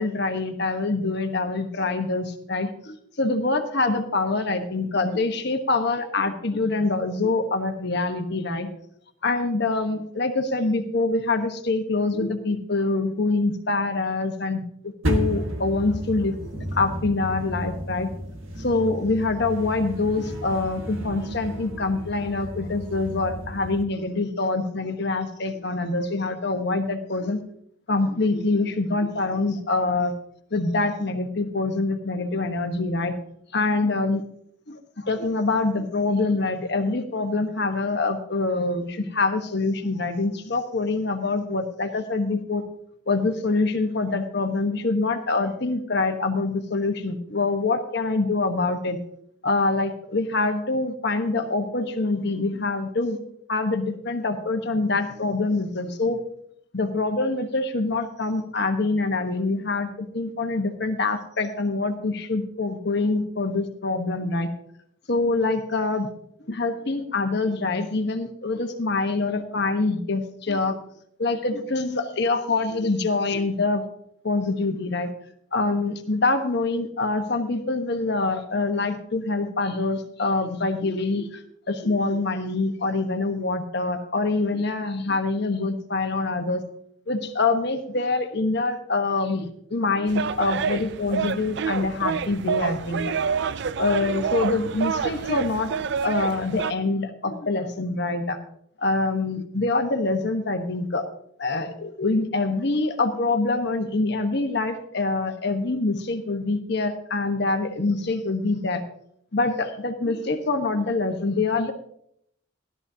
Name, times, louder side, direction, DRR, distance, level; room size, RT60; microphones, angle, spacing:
voice 1, 0.0-8.7 9.2-18.1 18.6-27.4 27.9-30.1 30.5-33.1 33.5-34.2 34.7-42.6 43.1-49.0 49.4-53.2 53.5-56.2 56.7-64.5 65.1-66.1 66.4-70.8 71.2-73.8 74.2-75.1 75.5-86.6 87.1-93.2 93.8-98.4 98.8-101.0 101.4-108.8 109.3-111.7, left 3 dB, 55° left, 6 dB, 1.2 m, -25 dB
sound 1, 15.0-23.8, right 1 dB, 75° right, 1.5 m, -32 dB
sound 2, 90.1-96.7, right 6 dB, 55° right, 0.4 m, -28 dB
15.0 x 12.0 x 2.8 m, 0.71 s
head